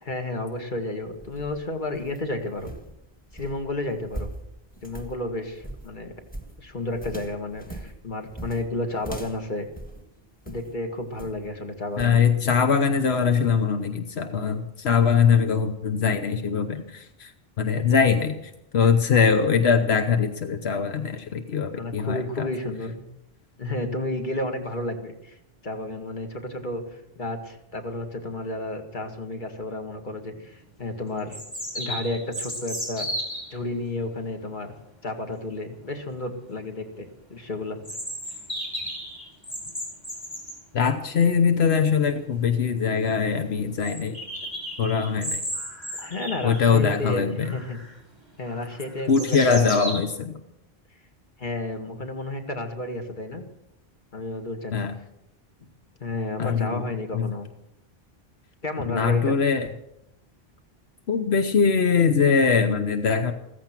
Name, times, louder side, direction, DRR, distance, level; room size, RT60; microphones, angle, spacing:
voice 1, 0.0-2.7 3.3-4.3 4.8-6.1 6.6-9.7 10.5-12.3 17.7-18.0 21.7-23.0 23.6-25.4 25.6-31.4 31.7-33.1 33.5-34.7 35.0-37.8 46.0-47.8 48.4-49.8 51.4-53.4 54.1-54.9 56.0-57.5 58.6-59.4, left 2 dB, 50° left, 4 dB, 2.1 m, -32 dB
sound 1, 1.0-10.7 11.2-11.5 12.0-12.2, right 1 dB, 10° left, 1.6 m, -40 dB
voice 2, 12.0-17.3 17.6-18.4 18.7-22.5 40.7-44.2 44.8-45.4 46.4-47.5 49.1-50.4 54.7-54.9 56.4-56.8 57.1-57.3 58.9-59.7 61.1-63.3, left 6 dB, 85° left, 7 dB, 1.2 m, -22 dB
sound 2, 30.3-30.4 31.3-33.5 37.8-40.6 42.2-42.3 42.6-42.7 43.0-43.1 43.8-47.0 47.4-47.9 48.5-50.0, equal, 25° left, 5.3 m, -34 dB
15.5 x 15.0 x 6.0 m, 0.83 s
omnidirectional pair, 1.1 m